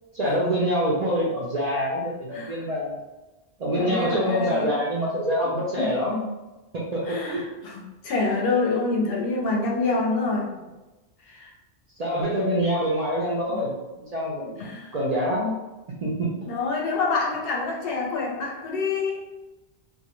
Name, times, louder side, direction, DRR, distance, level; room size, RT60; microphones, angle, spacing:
voice 1, 0.1-3.0 3.6-6.3 6.7-7.4 8.5-8.6 12.0-14.6 14.9-15.5 16.0-16.5, equal, 55° right, -6 dB, 0.4 m, -26 dB
voice 2, 2.3-2.6 3.7-4.7 5.7-5.9 7.0-10.5 11.2-11.5 13.5-13.6 14.6-14.9 16.5-19.3, left 3 dB, 65° left, -1 dB, 0.7 m, -27 dB
2.4 x 2.1 x 2.9 m, 1.1 s
omnidirectional pair, 1.1 m